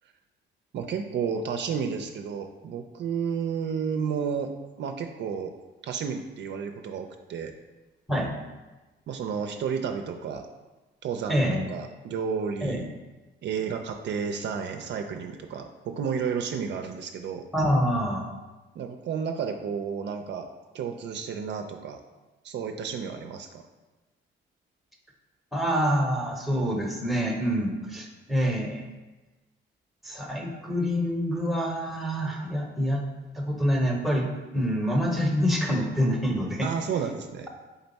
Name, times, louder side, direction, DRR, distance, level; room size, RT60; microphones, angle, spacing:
voice 1, 0.7-4.5 4.8-5.5 5.8-7.5 9.1-10.4 11.0-12.9 13.4-17.4 18.8-20.5 20.7-22.0 22.4-23.6 36.6-37.5, right 6 dB, 65° right, 5 dB, 0.4 m, -31 dB
voice 2, 11.3-11.7 12.6-12.8 17.5-18.2 25.5-28.9 30.0-33.0 33.3-34.3 34.5-36.7, equal, ahead, 1 dB, 0.8 m, -26 dB
3.8 x 3.4 x 4.0 m, 1.2 s
cardioid pair, 90°, 20 cm